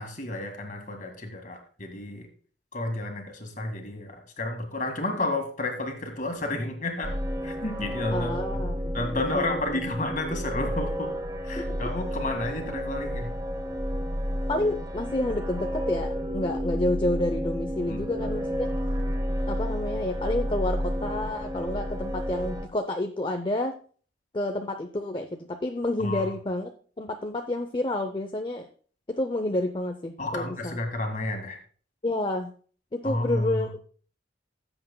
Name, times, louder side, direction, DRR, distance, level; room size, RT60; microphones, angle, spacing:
voice 1, 0.0-2.3 2.7-7.2 7.4-8.3 8.9-11.1 11.4-13.3 17.9-18.0 26.0-26.3 30.2-31.6 33.0-33.7, left 2 dB, 40° left, 4 dB, 1.9 m, -31 dB
sound 1, 7.0-22.7, equal, 20° right, 0.7 m, -31 dB
voice 2, 8.1-9.8 11.6-11.9 14.5-18.7 19.4-23.7 24.3-26.7 27.0-28.7 29.1-30.8 32.0-32.5 32.9-33.7, left 1 dB, 25° left, 5 dB, 0.6 m, -29 dB
16.5 x 7.9 x 2.2 m, 0.43 s
head